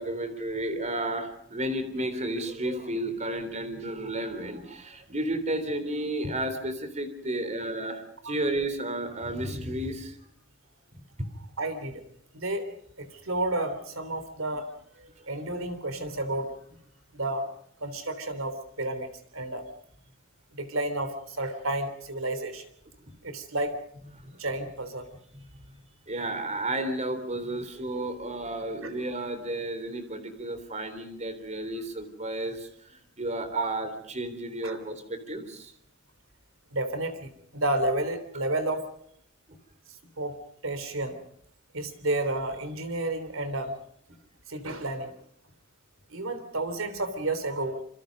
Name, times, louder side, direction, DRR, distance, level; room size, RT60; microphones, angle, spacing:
voice 1, 0.0-10.2 11.2-11.3 24.2-24.3 25.3-25.5 26.1-35.7, right 1 dB, 35° right, 10 dB, 3.5 m, -32 dB
voice 2, 11.6-12.0 12.3-12.7 13.0-14.7 15.3-16.6 17.1-17.5 17.8-19.6 20.5-22.6 23.2-23.7 24.4-25.1 28.8-28.9 33.6-33.7 34.6-34.8 36.7-38.9 40.2-40.3 40.6-41.2 41.7-43.7 44.5-45.1 46.1-47.8, right 2 dB, 70° right, 10 dB, 3.5 m, -31 dB
27.0 x 25.5 x 5.3 m, 0.69 s
head